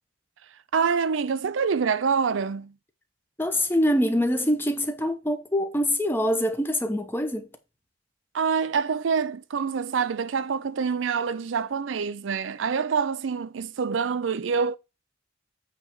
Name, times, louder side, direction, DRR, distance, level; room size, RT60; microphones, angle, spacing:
voice 1, 0.7-2.7 8.3-14.8, right 6 dB, 75° right, 0.5 m, -26 dB
voice 2, 3.4-7.5, equal, 10° left, 1.0 m, -24 dB
8.7 x 3.4 x 6.1 m
head